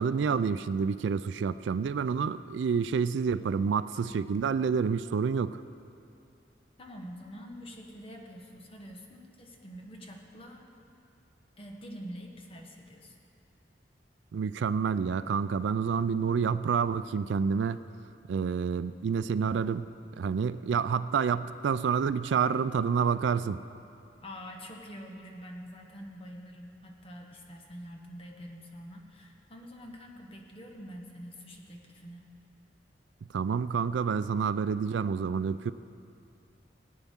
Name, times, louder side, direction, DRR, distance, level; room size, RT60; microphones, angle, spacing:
voice 1, 0.0-5.6 14.3-17.8 18.3-23.6 33.3-35.7, right 6 dB, 75° right, 14 dB, 0.3 m, -28 dB
voice 2, 6.8-10.7 11.6-13.2 24.2-32.3, equal, 30° left, 1 dB, 1.2 m, -46 dB
19.5 x 9.2 x 3.6 m, 2.6 s
head